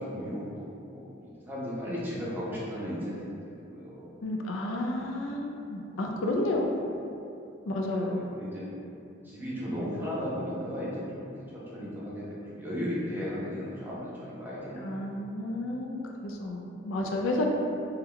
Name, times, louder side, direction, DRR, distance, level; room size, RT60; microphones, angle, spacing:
voice 1, 0.0-4.2 7.9-8.6 9.2-15.0, equal, 10° right, -8 dB, 0.5 m, -36 dB
voice 2, 4.2-6.7 7.7-8.2 14.8-17.4, left 1 dB, 85° left, 1 dB, 0.4 m, -31 dB
3.0 x 2.2 x 3.6 m, 2.6 s
head